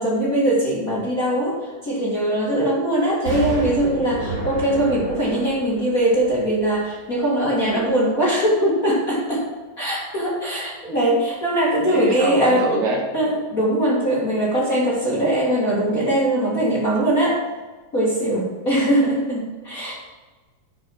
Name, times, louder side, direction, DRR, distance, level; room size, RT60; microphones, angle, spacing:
voice 1, 0.0-9.5 9.8-12.6 13.1-17.4 17.9-19.9, right 1 dB, 30° left, -6 dB, 1.8 m, -21 dB
Explosion, 3.3-7.2 7.6-7.7, right 1 dB, 35° right, 4.2 m, -31 dB
voice 2, 11.8-13.0, right 2 dB, 65° right, 0 dB, 2.3 m, -24 dB
9.6 x 7.0 x 5.9 m, 1.3 s
omnidirectional pair, 4.0 m